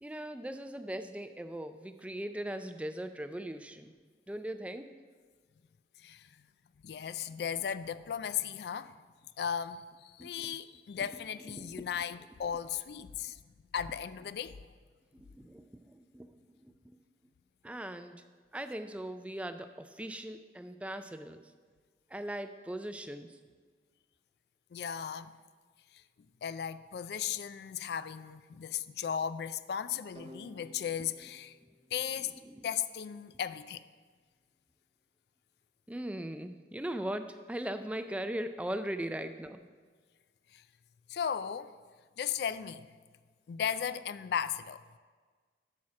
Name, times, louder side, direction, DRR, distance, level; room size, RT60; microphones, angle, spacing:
voice 1, 0.0-4.0 4.3-4.9 10.2-10.6 11.5-11.6 15.1-16.7 17.6-18.2 18.5-21.4 22.1-23.4 32.2-32.7 35.9-39.6, right 1 dB, 5° right, 0.3 m, -39 dB
voice 2, 6.8-8.9 9.4-13.4 13.7-14.6 24.7-25.3 26.4-31.5 31.9-32.3 32.6-33.8 40.5-40.6 41.1-41.7 42.2-42.9 43.5-44.8, left 8 dB, 70° left, 0.3 m, -36 dB
sound 1, 30.2-33.0, equal, 30° right, 0.8 m, -55 dB
8.4 x 6.3 x 5.8 m
head